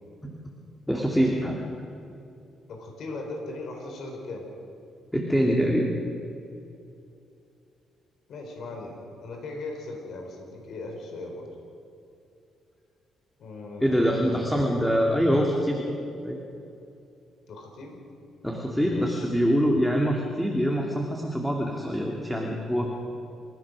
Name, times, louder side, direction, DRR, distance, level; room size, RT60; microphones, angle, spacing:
voice 1, 0.9-1.6 5.1-5.9 13.8-15.9 16.2-16.4 18.4-22.9, equal, 5° left, -1 dB, 2.6 m, -24 dB
voice 2, 2.7-4.5 8.3-11.5 13.4-15.0 17.5-18.0 18.9-19.3, left 2 dB, 65° left, 2 dB, 4.7 m, -39 dB
28.5 x 15.0 x 6.5 m, 2.6 s
cardioid pair, 90°, 0 cm